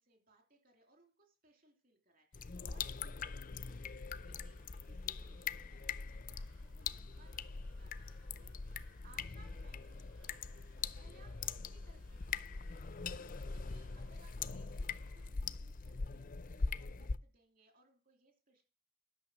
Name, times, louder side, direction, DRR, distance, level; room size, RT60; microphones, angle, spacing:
voice 1, 0.0-10.5 10.9-18.6, right 2 dB, 45° right, 3 dB, 3.1 m, -68 dB
sound 1, 2.3-17.2, left 5 dB, 45° left, 0.5 m, -42 dB
sound 2, 3.0-15.3, right 3 dB, 90° right, 3.2 m, -71 dB
11.5 x 6.6 x 6.2 m, 0.34 s
head